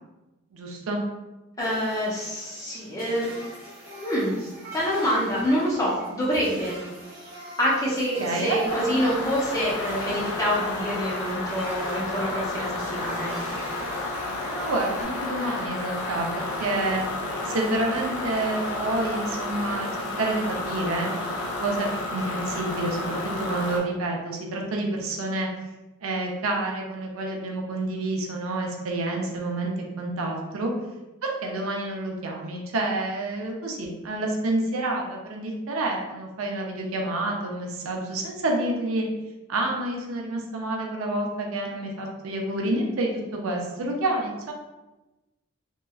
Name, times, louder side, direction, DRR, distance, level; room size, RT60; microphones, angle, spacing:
voice 1, 0.5-1.0 8.2-8.9 14.4-17.0 17.4-19.9 20.2-21.4 21.6-25.5 26.0-30.7 31.2-39.1 39.5-44.5, right 2 dB, 80° right, 0 dB, 0.5 m, -28 dB
voice 2, 1.6-3.3 4.0-4.3 4.7-6.8 7.6-13.3, equal, 15° left, -6 dB, 0.7 m, -26 dB
sound 1, 1.6-15.0, right 1 dB, 45° right, 0.8 m, -43 dB
sound 2, 8.7-23.8, left 2 dB, 90° left, 0.6 m, -31 dB
2.8 x 2.4 x 2.3 m, 1.1 s
head